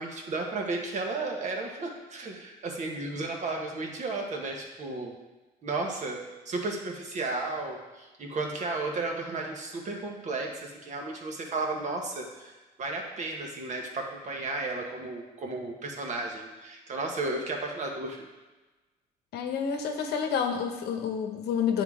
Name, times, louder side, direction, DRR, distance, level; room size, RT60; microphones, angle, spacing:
voice 1, 0.0-5.1 5.6-12.5 12.8-18.3, right 3 dB, 45° right, 1 dB, 1.3 m, -33 dB
voice 2, 19.3-21.8, left 7 dB, 75° left, 5 dB, 0.9 m, -29 dB
9.1 x 3.8 x 3.7 m, 1.2 s
cardioid pair, 110°, 17 cm